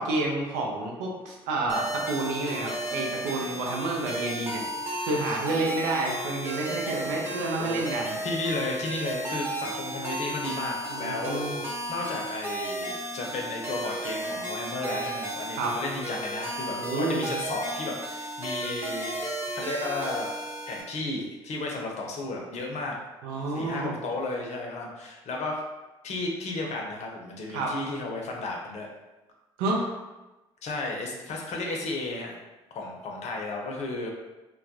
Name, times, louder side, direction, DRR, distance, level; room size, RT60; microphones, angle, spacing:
voice 1, 0.0-4.6 5.0-8.1 10.9-11.6 15.6-15.8 16.8-17.3 23.2-24.0 27.5-27.7 29.6-29.9, right 2 dB, 70° right, -1 dB, 0.5 m, -29 dB
sound 1, 1.7-20.8, right 1 dB, 15° right, 0.8 m, -34 dB
voice 2, 8.2-11.4 11.9-19.2 19.5-20.3 20.7-23.0 23.5-25.6 26.0-28.9 30.6-32.4 32.7-34.1, left 2 dB, 50° left, 0 dB, 0.6 m, -33 dB
2.2 x 2.1 x 2.8 m, 1.1 s
hypercardioid pair, 50°, 14 cm